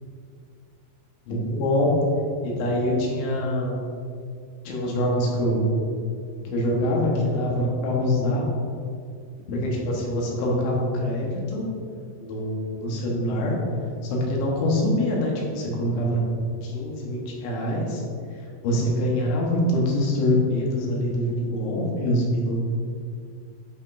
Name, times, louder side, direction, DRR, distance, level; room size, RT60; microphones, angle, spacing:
voice 1, 1.3-1.9 2.4-3.8 4.7-5.7 6.5-8.5 9.5-11.6 12.2-13.6 14.1-16.2 16.6-18.1 18.4-22.6, left 1 dB, 80° left, -2 dB, 3.6 m, -24 dB
11.0 x 5.2 x 2.6 m, 2.3 s
omnidirectional pair, 5.2 m